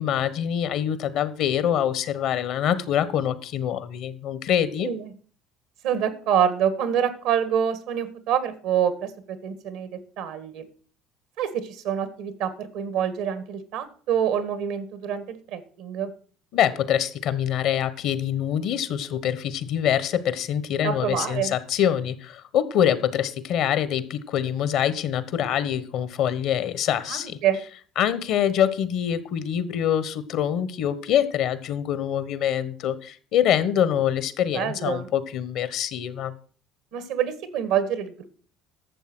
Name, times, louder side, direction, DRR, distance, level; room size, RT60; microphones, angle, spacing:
voice 1, 0.0-4.9 16.5-27.4 28.0-36.3, left 9 dB, 65° left, 15 dB, 1.2 m, -25 dB
voice 2, 5.8-10.7 11.4-16.1 20.8-21.5 27.1-27.6 34.5-35.1 36.9-38.3, right 8 dB, 75° right, 12 dB, 1.8 m, -26 dB
12.0 x 7.2 x 6.2 m, 0.43 s
supercardioid pair, 80°, 0 cm